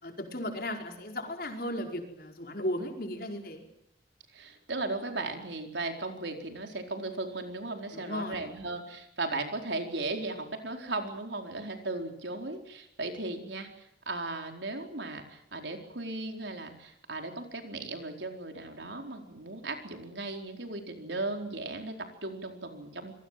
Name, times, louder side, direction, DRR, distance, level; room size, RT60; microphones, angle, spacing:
voice 1, 0.0-3.6 7.9-8.4, left 1 dB, 55° left, 3 dB, 4.9 m, -35 dB
voice 2, 4.3-23.1, right 2 dB, 85° right, 4 dB, 4.4 m, -36 dB
26.5 x 22.5 x 7.6 m, 0.78 s
head